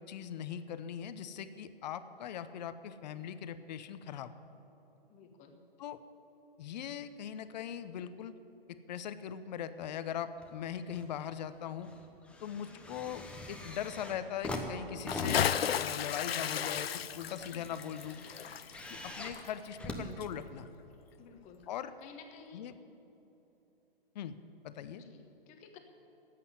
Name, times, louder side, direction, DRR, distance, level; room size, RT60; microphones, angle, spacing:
voice 1, 0.0-4.3 5.8-6.0 6.6-8.4 8.7-11.9 12.4-18.2 18.9-20.7 21.7-21.9 22.5-22.7 24.1-24.4 24.6-25.0, left 9 dB, 45° left, 13 dB, 0.7 m, -40 dB
voice 2, 5.1-5.6 21.2-21.7 22.0-22.7 24.9-25.8, left 6 dB, 25° left, 5 dB, 1.2 m, -54 dB
sound 1, 10.4-11.1 11.5-20.8 21.6-21.7, left 1 dB, 5° left, 0.9 m, -44 dB
Bathtub (filling or washing) / Splash splatter, 15.0-19.9 20.2-20.3, left 9 dB, 85° left, 0.5 m, -34 dB
10.5 x 8.5 x 9.9 m, 3.0 s
hypercardioid pair, 130°, 30 cm